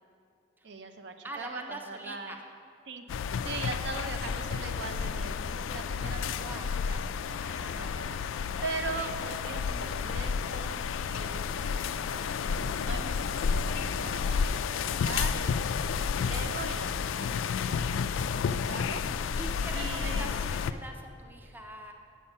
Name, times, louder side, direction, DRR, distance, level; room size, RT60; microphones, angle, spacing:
voice 1, 0.6-2.4 2.9-3.1 3.4-15.6 16.0-19.0 19.7-20.3, right 4 dB, 60° right, 7 dB, 0.5 m, -41 dB
voice 2, 1.2-2.4 6.3-6.7 7.4-7.9 8.6-9.1 15.5-15.9 19.4-21.9, right 1 dB, 10° right, 2 dB, 0.5 m, -44 dB
sound 1, 3.1-20.7, left 6 dB, 85° left, 0.3 m, -31 dB
7.9 x 7.3 x 5.4 m, 2.5 s
head